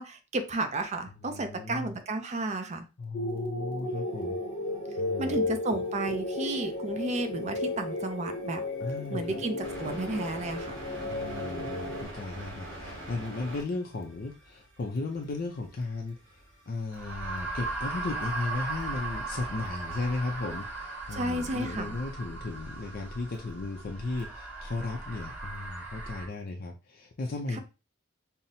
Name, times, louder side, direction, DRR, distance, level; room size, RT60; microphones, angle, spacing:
voice 1, 0.0-2.8 5.2-8.6 9.1-10.7 21.1-22.0 27.5-27.6, right 2 dB, 35° right, 7 dB, 0.5 m, -32 dB
voice 2, 1.2-1.9 3.0-4.4 5.0-5.8 8.8-9.4 11.1-16.2 16.7-27.6, left 3 dB, 50° left, 2 dB, 0.5 m, -35 dB
sound 1, 3.1-12.0, left 2 dB, 75° left, 0.8 m, -34 dB
sound 2, 4.9-5.0 5.4-5.5 5.9-20.6, right 1 dB, 55° right, 2.1 m, -47 dB
sound 3, 16.9-26.3, right 3 dB, 10° right, 1.2 m, -37 dB
5.5 x 2.0 x 2.6 m, 0.29 s
head